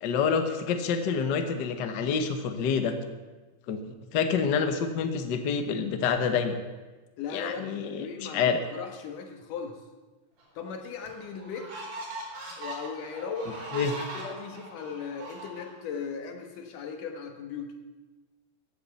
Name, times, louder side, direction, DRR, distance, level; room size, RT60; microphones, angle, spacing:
voice 1, 0.0-3.0 3.7-3.8 4.1-6.6 7.3-8.6 13.7-13.9, left 6 dB, 65° left, 7 dB, 1.0 m, -27 dB
voice 2, 7.2-7.7 8.0-9.8 10.5-11.7 12.6-17.8, left 6 dB, 85° left, 4 dB, 3.1 m, -38 dB
sound 1, 10.4-10.5 11.1-16.0, right 1 dB, 80° right, 5.0 m, -40 dB
14.5 x 8.3 x 8.1 m, 1.2 s
omnidirectional pair, 3.6 m